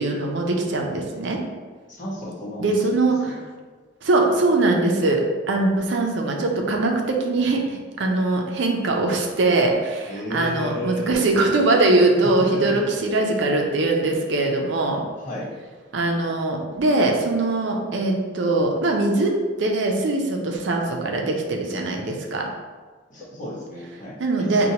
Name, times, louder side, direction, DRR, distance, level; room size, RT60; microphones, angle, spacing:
voice 1, 0.0-1.4 2.6-3.3 4.0-15.0 15.9-19.3 19.6-22.5 24.2-24.7, right 2 dB, 70° right, 1 dB, 0.5 m, -22 dB
voice 2, 1.9-3.4 10.1-11.4 12.2-13.0 15.2-15.5 23.1-24.7, equal, 45° left, -6 dB, 1.0 m, -33 dB
4.3 x 2.2 x 2.8 m, 1.4 s
head